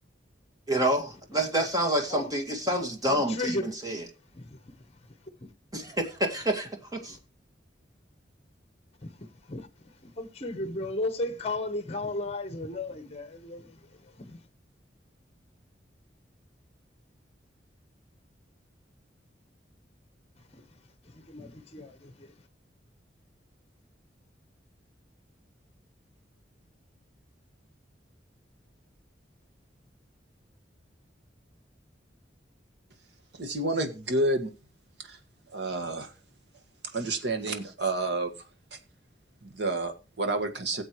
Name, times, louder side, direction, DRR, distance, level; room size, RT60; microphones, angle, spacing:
voice 1, 0.7-4.0 5.7-7.2, right 1 dB, 20° right, 2.0 m, -28 dB
voice 2, 3.1-3.8 4.3-5.5 7.1-7.2 9.0-14.4 20.5-20.8 21.0-22.3, left 2 dB, 35° left, 1.1 m, -36 dB
voice 3, 33.4-34.5 35.1-35.2 35.5-36.1 36.9-38.3 39.4-40.8, right 2 dB, 70° right, 1.6 m, -29 dB
16.5 x 7.7 x 3.1 m
head